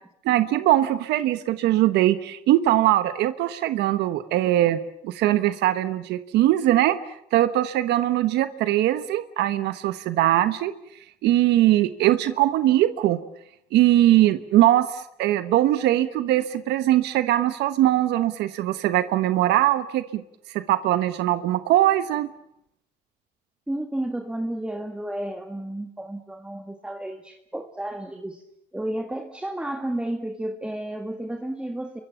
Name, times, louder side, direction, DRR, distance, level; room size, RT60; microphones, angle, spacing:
voice 1, 0.2-7.0 7.3-10.7 11.2-13.2 13.7-20.2 20.5-22.3, right 14 dB, 80° right, 11 dB, 1.2 m, -21 dB
voice 2, 23.7-28.5 28.7-32.0, right 1 dB, 5° right, 5 dB, 1.8 m, -32 dB
29.0 x 23.5 x 7.1 m, 0.77 s
cardioid pair, 110°, 17 cm